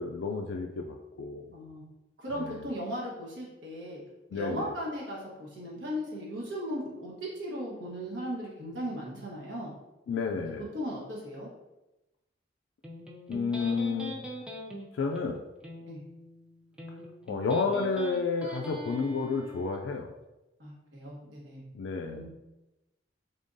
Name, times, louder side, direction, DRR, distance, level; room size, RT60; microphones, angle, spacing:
voice 1, 0.0-1.5 2.4-2.7 4.3-4.7 10.1-10.6 13.3-14.2 15.0-15.4 17.3-20.1 21.7-22.3, left 4 dB, 90° left, 2 dB, 0.3 m, -31 dB
voice 2, 1.5-1.9 2.2-4.0 4.3-9.7 10.4-11.5 15.9-16.0 20.6-21.6 22.0-22.3, equal, 90° right, -4 dB, 1.2 m, -37 dB
Electric guitar, 12.8-19.8, equal, 5° right, 0.3 m, -43 dB
3.7 x 3.4 x 2.6 m, 0.99 s
head